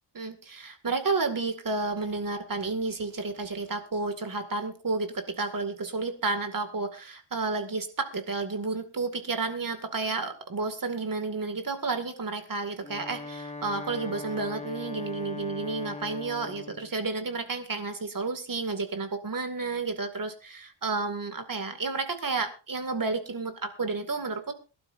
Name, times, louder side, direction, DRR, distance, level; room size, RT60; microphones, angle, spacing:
voice 1, 0.1-24.5, right 3 dB, 40° right, 7 dB, 2.2 m, -31 dB
Wind instrument woodwind instrument, 12.7-16.9, left 3 dB, 15° left, 1.5 m, -40 dB
22.0 x 12.0 x 2.6 m, 0.33 s
wide cardioid pair, 115°, 48 cm